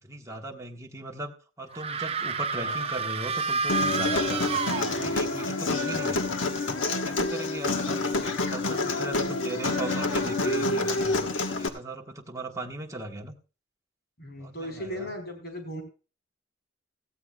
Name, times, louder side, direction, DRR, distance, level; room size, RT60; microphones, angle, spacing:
voice 1, 0.0-6.2 7.0-8.0 8.5-11.3 11.6-13.3 14.4-15.1, right 2 dB, 15° right, 1 dB, 1.4 m, -38 dB
sound 1, 1.7-5.4, right 4 dB, 35° right, 0.5 m, -30 dB
voice 2, 2.5-2.9 9.1-9.9 14.2-15.8, equal, 60° left, 4 dB, 4.8 m, -38 dB
Human voice, 3.7-11.7, left 2 dB, 85° left, 1.3 m, -28 dB
17.0 x 15.0 x 2.4 m, 0.34 s
head